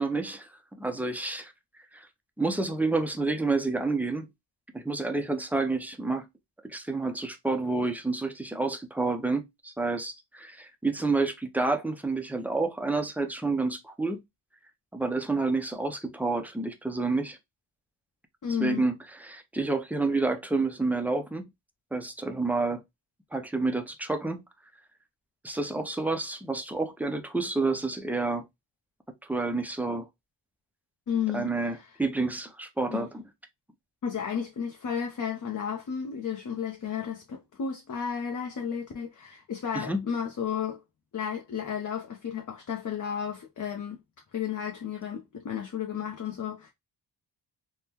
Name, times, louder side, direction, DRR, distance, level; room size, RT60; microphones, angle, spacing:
voice 1, 0.0-1.5 1.9-2.1 2.4-4.3 4.7-6.3 6.6-14.2 14.9-17.4 18.6-21.5 21.9-22.8 23.3-24.4 25.4-28.4 29.3-30.1 31.3-33.2 39.7-40.0, right 3 dB, 5° right, 0.4 m, -29 dB
voice 2, 18.4-18.9 31.1-31.8 32.9-33.1 34.0-40.8 41.1-44.0 44.3-46.7, left 7 dB, 45° left, 0.6 m, -33 dB
3.6 x 2.1 x 2.7 m
wide cardioid pair, 100°, 45 cm